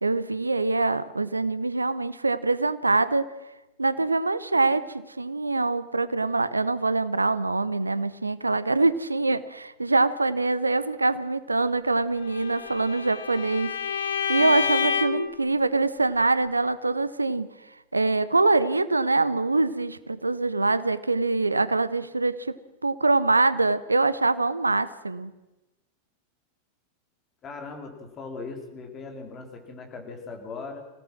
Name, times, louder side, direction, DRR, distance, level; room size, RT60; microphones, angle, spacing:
voice 1, 0.0-3.2 3.8-4.8 5.2-17.5 17.9-22.6 22.8-25.3, right 3 dB, 80° right, 15 dB, 0.8 m, -24 dB
Bowed string instrument, 12.3-15.3, left 6 dB, 65° left, 1.1 m, -28 dB
voice 2, 27.4-30.8, left 4 dB, 30° left, 3 dB, 4.0 m, -39 dB
26.0 x 17.0 x 6.1 m, 1.0 s
figure-of-eight pair, 90°, 0 cm